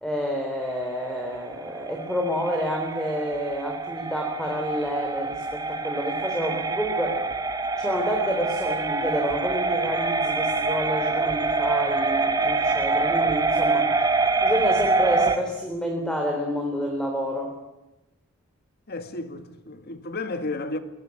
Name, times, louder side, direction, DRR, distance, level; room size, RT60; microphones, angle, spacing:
voice 1, 0.0-7.2 7.8-13.9 14.4-17.5, equal, 5° left, 3.7 m, -29 dB
sound 1, 0.7-15.4, right 3 dB, 20° right, 1.8 m, -25 dB
voice 2, 18.9-20.8, left 2 dB, 45° left, 2.0 m, -32 dB
22.0 x 21.0 x 9.7 m
head